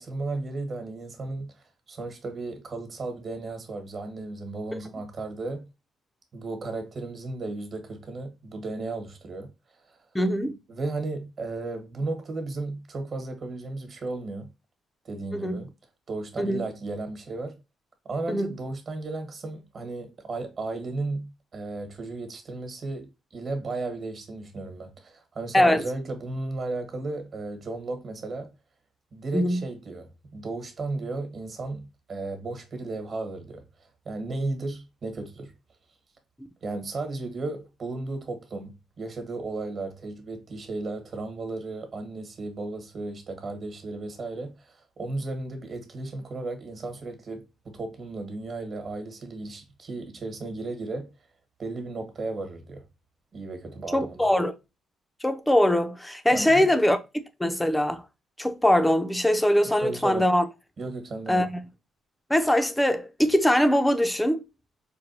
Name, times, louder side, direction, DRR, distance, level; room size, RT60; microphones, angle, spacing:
voice 1, 0.0-5.7 6.3-9.5 9.9-10.0 10.7-14.5 15.0-15.7 16.1-17.6 18.0-28.5 29.1-35.5 36.6-51.1 51.6-52.8 53.3-54.2 56.3-56.7 59.8-60.2 60.8-61.4, right 2 dB, 45° right, 1.3 m, -34 dB
voice 2, 10.1-10.5 15.3-15.6 16.4-16.6 18.3-18.5 25.5-25.8 29.3-29.6 53.9-54.5 55.2-57.0 57.4-58.0 58.4-60.5 61.3-61.6 62.3-64.4, left 1 dB, 10° left, 0.6 m, -22 dB
4.6 x 2.2 x 2.7 m
cardioid pair, 90°, 0 cm